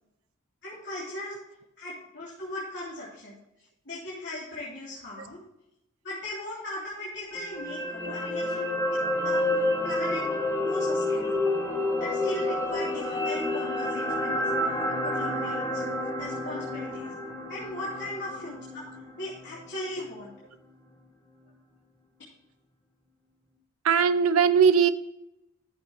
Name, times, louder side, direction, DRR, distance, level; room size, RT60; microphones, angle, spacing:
voice 1, 0.6-1.4 1.8-3.3 3.8-5.4 6.0-9.0 9.2-10.2 10.6-11.4 12.0-15.8 16.2-17.1 17.5-18.8 19.2-20.3, left 1 dB, 55° left, -7 dB, 3.1 m, -38 dB
sound 1, 7.3-19.6 20.0-20.1, left 1 dB, 15° left, 2.1 m, -29 dB
voice 2, 23.8-24.9, right 6 dB, 85° right, 10 dB, 0.6 m, -20 dB
13.5 x 6.9 x 3.0 m, 0.88 s
head